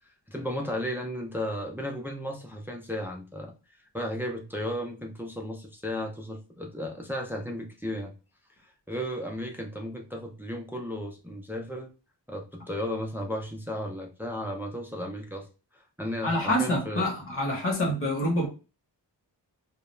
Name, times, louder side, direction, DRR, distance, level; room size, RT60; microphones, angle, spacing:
voice 1, 0.3-3.5 3.9-8.1 8.6-11.9 12.3-15.5 16.0-17.1, equal, 5° right, 0.3 m, -34 dB
voice 2, 16.2-18.5, left 1 dB, 30° left, 0.8 m, -26 dB
2.3 x 2.0 x 3.0 m
wide cardioid pair, 120°, 44 cm